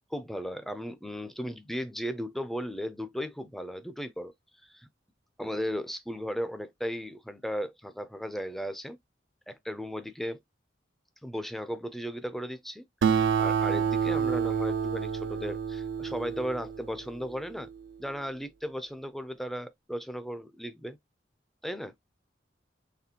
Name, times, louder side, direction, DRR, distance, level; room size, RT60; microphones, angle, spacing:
voice 1, 0.1-4.3 4.6-4.9 5.4-9.0 9.5-10.4 11.2-17.7 18.0-21.0 21.6-21.9, equal, ahead, 0.4 m, -36 dB
Acoustic guitar, 13.0-17.9, right 7 dB, 75° right, 0.5 m, -29 dB
4.2 x 3.0 x 2.8 m
head